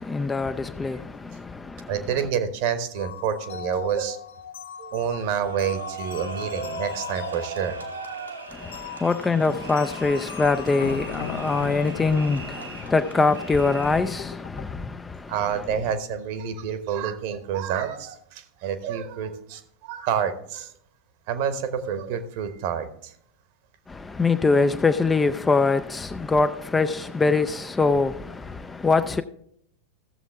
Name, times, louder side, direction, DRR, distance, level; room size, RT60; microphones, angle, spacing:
voice 1, 0.0-1.9 8.5-15.3 23.9-29.2, left 3 dB, 10° left, 0.4 m, -23 dB
voice 2, 1.9-4.2 4.8-7.8 15.3-20.7 21.3-23.1, right 8 dB, 45° right, 1.0 m, -28 dB
sound 1, 3.0-14.7, left 9 dB, 60° left, 0.5 m, -39 dB
sound 2, 5.2-14.2, right 4 dB, 80° right, 1.4 m, -39 dB
15.0 x 7.1 x 3.5 m
figure-of-eight pair, 90°, 0 cm